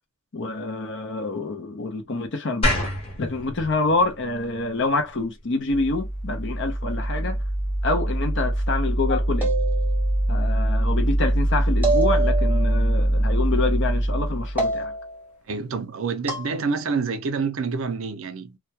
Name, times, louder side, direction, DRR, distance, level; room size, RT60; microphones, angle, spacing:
voice 1, 0.3-2.8 3.2-7.4 7.8-9.5 10.3-14.9, left 3 dB, 55° left, 0.6 m, -27 dB
sound 1, 2.6-5.8, left 1 dB, 25° left, 0.9 m, -29 dB
sound 2, 5.7-14.8, right 1 dB, 85° left, 0.8 m, -23 dB
sound 3, 9.4-10.2 11.8-12.8 14.6-15.2 16.3-16.5, right 3 dB, 10° right, 0.6 m, -26 dB
voice 2, 15.5-18.6, right 4 dB, 65° right, 0.5 m, -27 dB
2.2 x 2.1 x 2.8 m
head